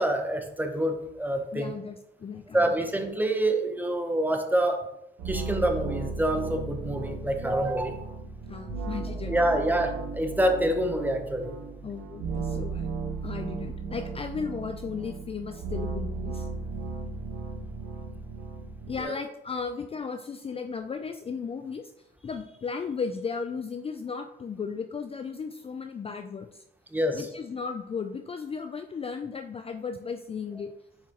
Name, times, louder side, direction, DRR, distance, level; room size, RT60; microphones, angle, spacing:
voice 1, 0.0-1.7 2.5-4.8 5.3-8.0 9.3-11.6 19.0-19.1 26.9-27.3, right 1 dB, 10° right, 5 dB, 0.9 m, -26 dB
voice 2, 1.5-2.7 8.5-9.3 9.7-9.8 11.8-12.9 13.2-16.5 18.9-21.9 22.2-26.6 27.1-30.7, left 5 dB, 30° left, 7 dB, 0.4 m, -35 dB
sound 1, 5.2-19.0, right 4 dB, 85° right, 1.1 m, -35 dB
7.0 x 4.8 x 3.0 m, 0.82 s
cardioid pair, 90°, 20 cm